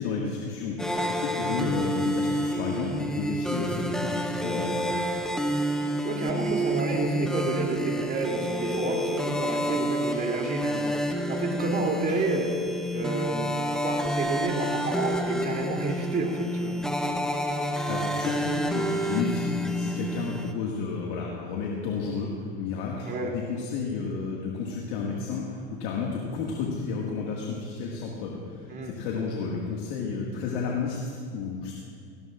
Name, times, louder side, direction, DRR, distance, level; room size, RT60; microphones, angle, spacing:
voice 1, 0.0-5.0 17.9-19.5 19.8-31.7, left 5 dB, 70° left, -2 dB, 2.0 m, -32 dB
sound 1, 0.8-20.5, equal, ahead, 0.8 m, -29 dB
voice 2, 6.0-11.0 11.3-12.5 12.9-16.8 23.0-23.3 28.7-28.9, right 3 dB, 35° right, 0 dB, 3.0 m, -30 dB
18.0 x 16.5 x 2.5 m, 2.2 s
hypercardioid pair, 100°, 29 cm